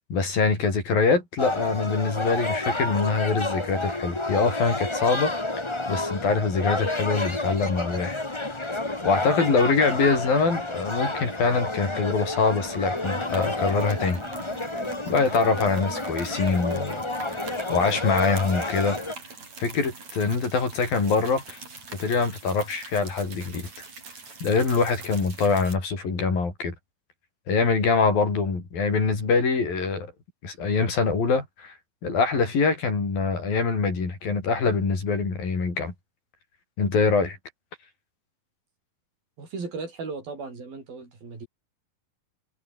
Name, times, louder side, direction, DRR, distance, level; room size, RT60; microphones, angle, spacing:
voice 1, 0.1-5.3 5.9-8.2 9.0-14.2 15.1-17.0 17.7-19.0 19.6-21.6 21.9-23.7 24.4-26.7 27.5-30.1 30.4-31.7 32.0-35.9 36.8-37.4, left 4 dB, 75° left, 8.3 m, -24 dB
sound 1, 1.4-19.2, left 2 dB, 15° left, 0.9 m, -30 dB
sound 2, 7.1-7.7 8.0-8.3 8.6-9.4 10.0-11.9 12.2-12.3 12.6-25.8, right 4 dB, 50° right, 7.3 m, -43 dB
voice 2, 39.4-41.5, right 4 dB, 85° right, 9.3 m, -36 dB
omnidirectional pair, 4.1 m